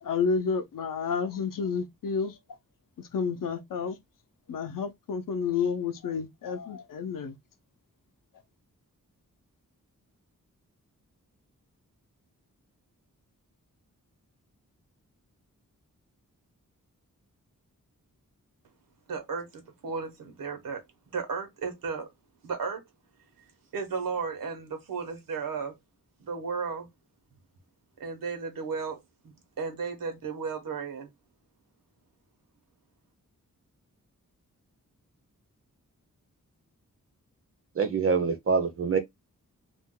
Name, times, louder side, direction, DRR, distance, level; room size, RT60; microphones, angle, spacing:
voice 1, 0.0-2.4 3.0-4.0 4.5-7.3, left 6 dB, 75° left, 0.6 m, -30 dB
voice 2, 19.1-20.8 21.1-22.1 22.4-22.8 23.7-25.8 26.2-26.9 28.0-29.0 29.2-31.1, right 5 dB, 90° right, 0.9 m, -34 dB
voice 3, 37.7-39.0, right 5 dB, 45° right, 0.5 m, -25 dB
2.5 x 2.1 x 3.6 m
wide cardioid pair, 145°, 33 cm